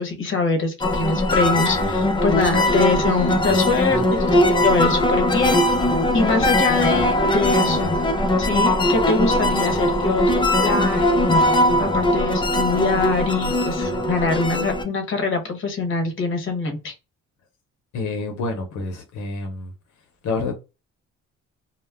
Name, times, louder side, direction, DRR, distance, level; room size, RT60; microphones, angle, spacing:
voice 1, 0.0-5.6 6.1-8.0 8.4-11.4 11.8-16.9, left 3 dB, 40° left, 0.9 m, -24 dB
sound 1, 0.8-14.8, left 1 dB, 15° left, 0.4 m, -20 dB
voice 2, 17.9-19.7 20.2-20.5, left 3 dB, 80° left, 0.7 m, -28 dB
2.2 x 2.1 x 3.3 m
cardioid pair, 90°, 30 cm